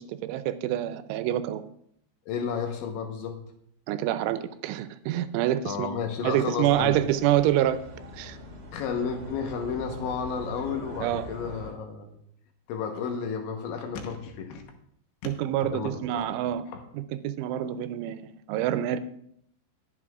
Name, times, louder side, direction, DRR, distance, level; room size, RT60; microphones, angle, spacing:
voice 1, 0.0-1.6 3.9-5.9 6.2-7.8 8.2-8.4 11.0-11.2 15.2-16.7 16.9-19.0, right 12 dB, 90° right, 12 dB, 3.1 m, -27 dB
voice 2, 2.3-3.4 5.7-7.0 8.7-12.1 12.7-14.6 15.2-15.3 15.6-16.8, left 6 dB, 75° left, 4 dB, 3.3 m, -32 dB
sound 1, 6.6-11.7, equal, 45° right, 1.5 m, -42 dB
19.5 x 8.0 x 2.4 m, 0.69 s
omnidirectional pair, 5.5 m